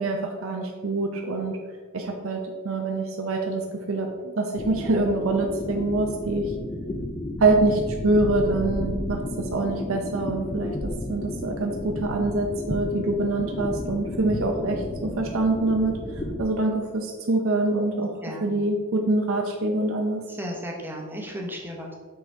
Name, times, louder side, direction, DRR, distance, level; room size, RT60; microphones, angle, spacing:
voice 1, 0.0-1.6 1.9-3.6 3.9-6.5 7.4-16.0 16.4-18.1 18.4-20.2, right 2 dB, 70° right, 2 dB, 0.7 m, -25 dB
sound 1, 4.6-16.4, left 1 dB, 20° left, 0.5 m, -32 dB
voice 2, 18.2-18.6 20.3-21.9, equal, 10° right, -1 dB, 0.9 m, -35 dB
6.2 x 3.9 x 4.4 m, 1.5 s
head